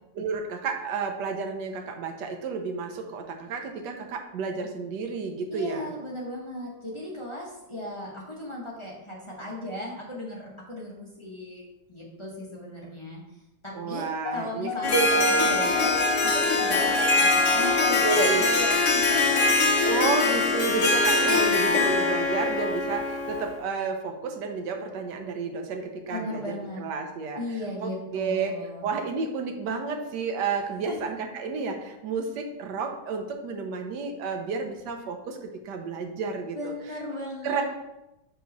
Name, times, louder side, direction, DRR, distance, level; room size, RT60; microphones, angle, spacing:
voice 1, 0.1-5.9 13.7-14.7 15.3-15.5 18.0-18.5 19.8-26.4 26.8-27.4 27.8-28.5 28.8-36.7 37.4-37.6, right 4 dB, 65° right, 4 dB, 1.3 m, -31 dB
voice 2, 5.5-11.6 11.9-13.2 13.6-19.6 20.5-20.6 21.0-21.8 26.1-26.8 27.4-28.9 30.9-31.0 36.5-37.6, left 1 dB, 25° left, -4 dB, 0.6 m, -36 dB
sound 1, 14.3-18.2, left 5 dB, 75° left, 1.1 m, -32 dB
Harp, 14.8-23.6, left 3 dB, 55° left, 0.9 m, -23 dB
4.9 x 3.8 x 5.2 m, 0.94 s
omnidirectional pair, 2.2 m